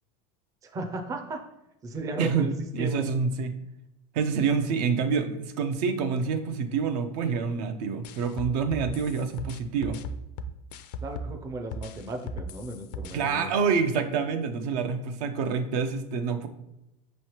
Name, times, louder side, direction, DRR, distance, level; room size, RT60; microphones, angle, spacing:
voice 1, 0.6-1.4 1.8-3.0 11.0-13.5, right 2 dB, 15° right, 3 dB, 0.4 m, -35 dB
voice 2, 2.2-3.6 4.1-10.0 13.1-16.5, right 5 dB, 70° right, 8 dB, 0.6 m, -27 dB
sound 1, 8.0-11.4 11.7-13.1, equal, 75° left, 0.4 m, -37 dB
5.5 x 3.1 x 2.9 m, 0.88 s
supercardioid pair, 135°, 21 cm